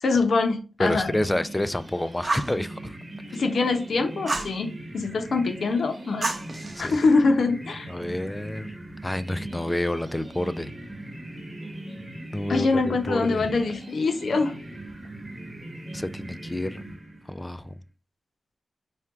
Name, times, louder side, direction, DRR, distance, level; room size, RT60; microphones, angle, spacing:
voice 1, 0.0-1.2 3.3-6.3 6.8-7.9 12.5-14.6, left 3 dB, 80° left, 0.7 m, -24 dB
voice 2, 0.8-3.0 6.8-7.0 7.9-8.7 9.0-10.7 12.3-13.6 15.9-16.8 17.3-17.7, left 1 dB, 15° left, 0.3 m, -29 dB
sound 1, 0.9-17.5, right 1 dB, 25° right, 1.0 m, -40 dB
Fire, 2.2-2.6 4.3-4.6 6.2-7.1, right 3 dB, 45° right, 0.8 m, -29 dB
4.4 x 2.3 x 3.5 m
wide cardioid pair, 75°, 0 cm